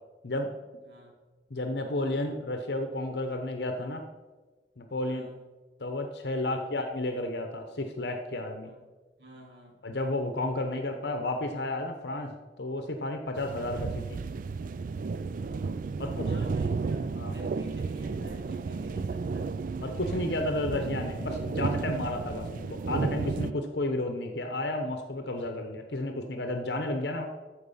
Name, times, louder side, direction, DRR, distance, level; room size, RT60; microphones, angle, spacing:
voice 1, 0.8-1.2 4.9-5.4 6.4-6.6 8.6-8.8 9.2-9.8 15.4-19.5, right 1 dB, 65° right, -1 dB, 2.7 m, -49 dB
voice 2, 1.5-4.0 4.8-5.3 5.8-8.7 9.8-14.2 16.0-16.4 17.2-17.4 18.1-18.3 19.8-27.3, left 1 dB, 65° left, 5 dB, 0.9 m, -32 dB
sound 1, 13.4-23.5, right 4 dB, 50° right, 0.3 m, -33 dB
13.5 x 4.7 x 5.6 m, 1.3 s
head